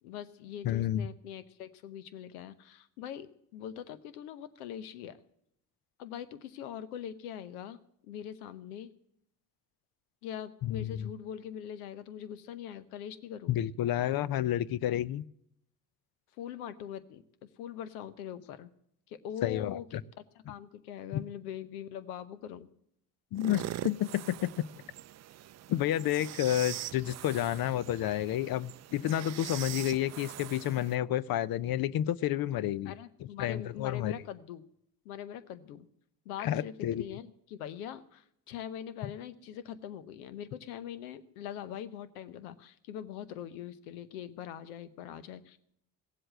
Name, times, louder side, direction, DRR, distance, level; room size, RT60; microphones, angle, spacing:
voice 1, 0.0-5.2 6.0-7.8 8.0-8.9 10.2-13.7 16.4-17.2 17.6-18.7 19.1-20.0 20.5-22.7 32.9-34.6 35.0-35.9 36.2-45.6, left 9 dB, 85° left, 14 dB, 0.9 m, -42 dB
voice 2, 0.6-1.1 10.6-11.1 13.5-15.2 19.4-20.0 21.1-21.2 23.3-24.7 25.7-32.9 33.2-34.1 36.4-37.2, left 12 dB, 55° left, 20 dB, 0.6 m, -30 dB
sound 1, 23.4-31.0, right 12 dB, 40° right, 0.5 m, -43 dB
16.5 x 7.8 x 7.7 m, 0.73 s
hypercardioid pair, 55°, 43 cm